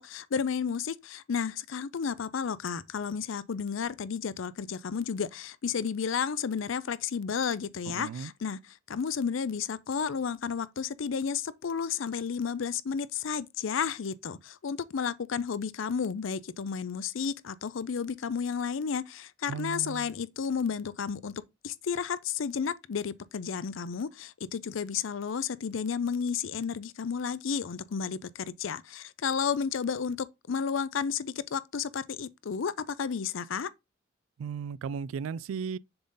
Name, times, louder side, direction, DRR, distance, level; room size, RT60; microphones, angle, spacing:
voice 1, 0.0-8.6 8.9-21.3 21.6-33.7, left 6 dB, 70° left, 0.5 m, -32 dB
voice 2, 7.9-8.3 19.5-20.1 34.4-35.8, right 6 dB, 85° right, 0.3 m, -36 dB
6.8 x 4.0 x 3.8 m
head